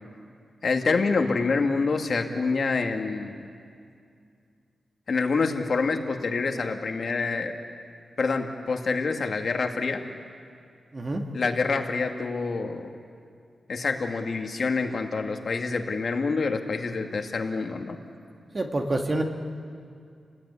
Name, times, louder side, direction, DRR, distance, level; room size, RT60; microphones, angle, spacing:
voice 1, 0.6-3.5 5.1-7.6 8.2-10.0 11.3-12.9 13.7-18.0, left 4 dB, 55° left, 4 dB, 2.1 m, -27 dB
voice 2, 10.9-11.2 18.5-19.2, right 2 dB, 35° right, 3 dB, 2.1 m, -27 dB
29.0 x 19.5 x 9.8 m, 2.3 s
wide cardioid pair, 130°, 0 cm